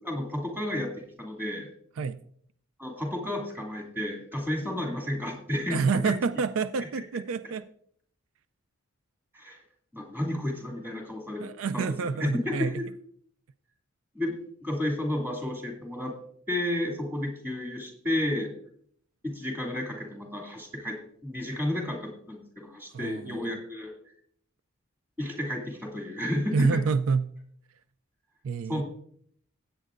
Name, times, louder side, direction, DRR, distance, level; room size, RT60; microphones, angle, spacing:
voice 1, 0.0-0.9 1.2-1.7 2.8-6.1 9.3-9.6 9.9-11.4 11.7-12.8 14.1-14.3 14.6-16.1 16.5-18.5 19.2-23.9 25.2-26.8 28.7-28.8, left 1 dB, 10° right, 0 dB, 2.4 m, -32 dB
voice 2, 5.7-7.7 11.4-12.7 22.9-23.6 26.5-27.3 28.4-28.8, right 5 dB, 70° right, 13 dB, 0.4 m, -28 dB
16.0 x 9.0 x 2.5 m, 0.63 s
head